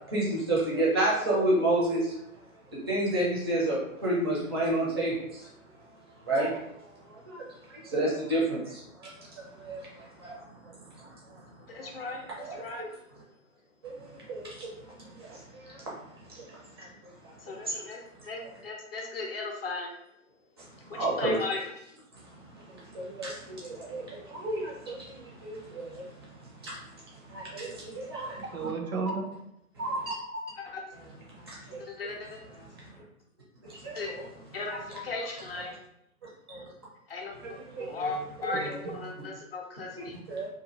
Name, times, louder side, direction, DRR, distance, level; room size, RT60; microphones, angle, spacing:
voice 1, 0.1-2.2 2.9-5.4 6.2-6.6 7.1-7.4 7.7-9.1 9.6-10.7 11.8-11.9 12.4-12.9 13.8-14.7 15.2-15.8 16.3-16.9 17.2-17.3 17.7-17.9 20.9-21.4 22.7-26.0 26.6-26.8 27.3-28.4 31.5-31.8 33.8-34.3 34.7-34.8 36.5-36.6 37.4-37.9 38.4-38.6 40.0-40.5, right 1 dB, 20° right, -5 dB, 0.4 m, -31 dB
voice 2, 11.7-12.9 17.5-18.0 18.3-19.9 20.9-21.6 31.8-32.4 33.9-34.1 34.5-35.7 37.1-40.1, left 3 dB, 40° left, 0 dB, 0.6 m, -37 dB
voice 3, 28.4-29.3 29.8-30.4 37.9-38.3 38.5-39.0, right 3 dB, 65° right, 2 dB, 0.7 m, -34 dB
2.7 x 2.4 x 2.8 m, 0.78 s
figure-of-eight pair, 125°, 44 cm